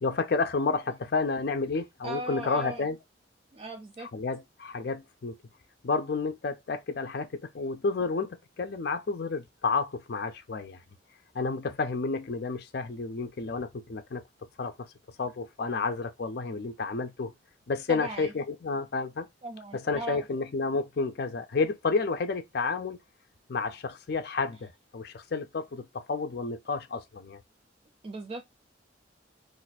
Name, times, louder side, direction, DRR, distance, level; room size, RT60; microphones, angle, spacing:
voice 1, 0.0-3.0 4.1-5.4 5.8-10.8 11.3-14.2 14.6-14.9 15.2-17.3 17.7-19.3 19.7-23.0 23.5-27.4, left 4 dB, 55° left, 0.5 m, -31 dB
voice 2, 2.0-2.9 3.5-4.1 17.9-18.3 19.4-20.2 28.0-28.4, right 2 dB, 30° right, 0.3 m, -38 dB
2.5 x 2.5 x 4.0 m
head